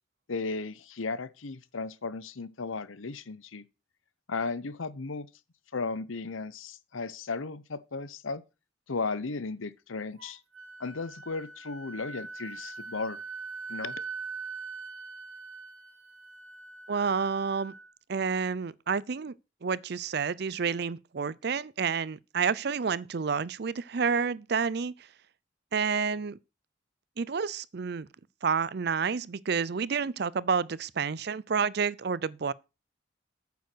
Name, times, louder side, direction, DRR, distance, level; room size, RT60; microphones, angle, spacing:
voice 1, 0.3-3.6 4.3-5.3 5.7-8.4 8.9-10.4 10.8-13.2 13.7-14.0, left 4 dB, 85° left, 0.8 m, -35 dB
Wind instrument woodwind instrument, 10.2-17.9, right 4 dB, 90° right, 1.4 m, -42 dB
voice 2, 16.9-17.7 18.1-19.3 19.6-24.9 25.7-26.4 27.2-28.1 28.4-32.5, right 6 dB, 55° right, 0.5 m, -29 dB
9.3 x 7.1 x 6.1 m
head